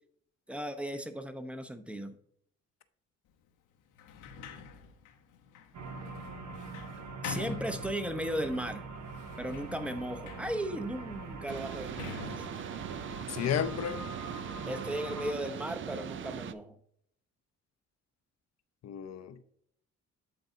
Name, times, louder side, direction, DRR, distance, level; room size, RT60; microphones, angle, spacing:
voice 1, 0.5-2.1 7.2-8.8 9.4-12.5 14.7-16.8, right 1 dB, 5° right, 0.7 m, -36 dB
Sliding door, 3.9-8.4 9.1-13.9, left 6 dB, 90° left, 1.0 m, -46 dB
sound 1, 5.7-15.3, right 4 dB, 65° right, 1.0 m, -43 dB
sound 2, 11.5-16.5, right 8 dB, 40° right, 0.4 m, -40 dB
voice 2, 13.3-14.0 18.8-19.4, left 8 dB, 60° left, 0.6 m, -32 dB
11.0 x 4.0 x 2.7 m
cardioid pair, 90°, 30 cm